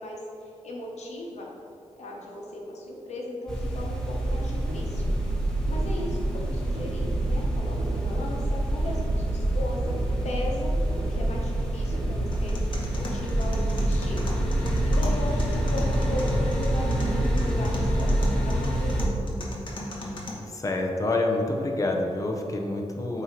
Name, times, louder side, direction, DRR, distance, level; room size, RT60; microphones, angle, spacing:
voice 1, 0.0-1.5 2.0-5.1 5.7-12.6 12.9-14.2 14.8-18.1 18.4-19.1, left 1 dB, 75° left, -2 dB, 1.1 m, -37 dB
sound 1, 3.5-19.1, right 1 dB, 5° left, 0.9 m, -27 dB
sound 2, 4.6-14.1, right 2 dB, 60° right, 0.5 m, -32 dB
sound 3, 12.3-20.3, left 1 dB, 45° left, 1.0 m, -38 dB
voice 2, 20.5-23.2, left 2 dB, 30° left, 2 dB, 0.6 m, -27 dB
7.8 x 2.8 x 4.5 m, 2.6 s
wide cardioid pair, 140°, 11 cm